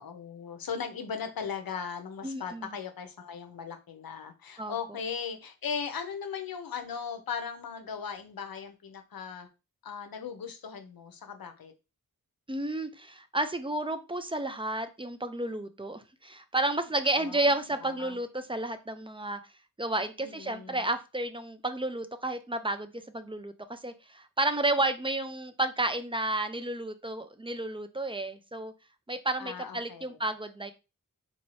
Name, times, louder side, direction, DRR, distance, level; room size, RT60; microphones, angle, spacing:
voice 1, 0.0-9.5 9.8-11.7 17.2-18.2 20.2-20.9 29.4-30.2, left 6 dB, 75° left, 7 dB, 0.7 m, -38 dB
voice 2, 2.2-2.7 4.6-4.7 12.5-19.4 19.8-28.7 29.1-30.7, right 2 dB, 15° right, 9 dB, 0.3 m, -31 dB
4.1 x 2.7 x 3.1 m, 0.28 s
wide cardioid pair, 110°, 36 cm